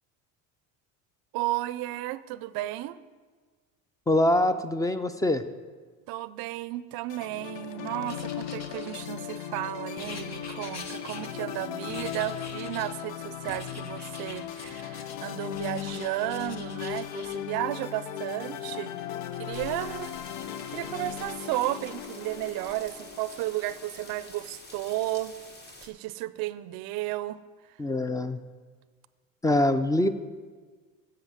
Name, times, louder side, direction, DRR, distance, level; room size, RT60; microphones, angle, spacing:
voice 1, 1.3-3.0 6.1-18.9 19.3-20.1 20.7-25.3 25.8-27.8, right 16 dB, 70° right, 16 dB, 0.5 m, -33 dB
voice 2, 4.1-5.4 27.8-28.4 29.4-30.1, left 1 dB, 10° left, 11 dB, 0.5 m, -24 dB
sound 1, 7.1-24.5, left 10 dB, 80° left, 0.7 m, -38 dB
Writing, 8.0-9.4 10.0-11.6 11.9-13.0 13.5-15.2 15.5-17.4, left 4 dB, 45° left, 1.1 m, -45 dB
sound 2, 19.5-25.9, left 2 dB, 25° left, 1.3 m, -48 dB
7.8 x 7.5 x 7.3 m, 1.5 s
cardioid pair, 105°, 37 cm